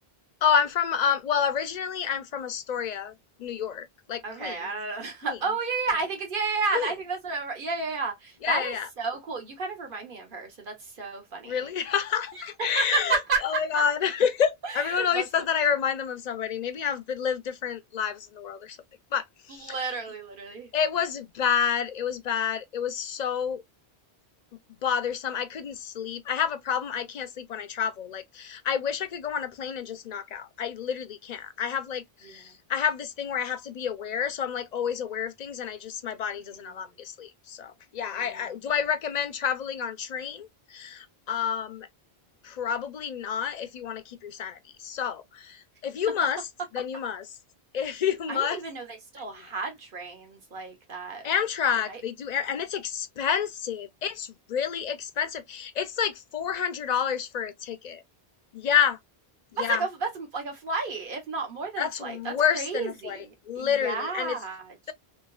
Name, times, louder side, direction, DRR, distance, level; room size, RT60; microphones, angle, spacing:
voice 1, 0.4-3.1 3.4-4.6 5.2-5.3 6.7-6.9 8.4-8.9 11.5-13.2 13.4-18.8 19.1-19.7 20.7-23.6 24.8-41.9 42.4-46.4 46.7-47.3 47.7-48.6 51.2-58.0 58.5-59.0 59.6-59.8 61.8-63.2 63.5-64.3, left 8 dB, 50° left, 0.6 m, -29 dB
voice 2, 4.2-11.7 12.6-13.9 14.6-15.3 19.5-20.7 32.2-32.4 36.3-36.9 38.0-38.6 46.8-46.9 48.3-51.3 51.9-52.0 59.6-64.8, right 4 dB, 60° right, 1.4 m, -32 dB
3.1 x 3.0 x 2.3 m
omnidirectional pair, 1.0 m